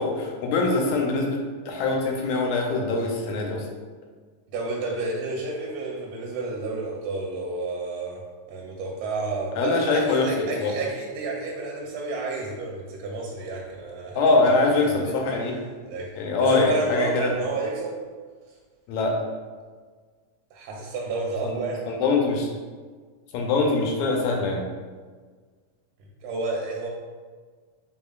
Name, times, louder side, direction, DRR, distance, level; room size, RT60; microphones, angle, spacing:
voice 1, 0.0-3.7 9.6-10.7 14.2-15.6 16.2-17.3 18.9-19.2 21.4-21.6 21.9-22.5 23.3-24.6, left 3 dB, 80° left, 1 dB, 1.9 m, -23 dB
voice 2, 4.5-8.2 8.5-15.2 15.8-16.1 16.4-18.0 20.5-21.9 26.0-26.9, right 3 dB, 85° right, -2 dB, 2.0 m, -31 dB
4.6 x 3.7 x 2.3 m, 1.5 s
omnidirectional pair, 3.4 m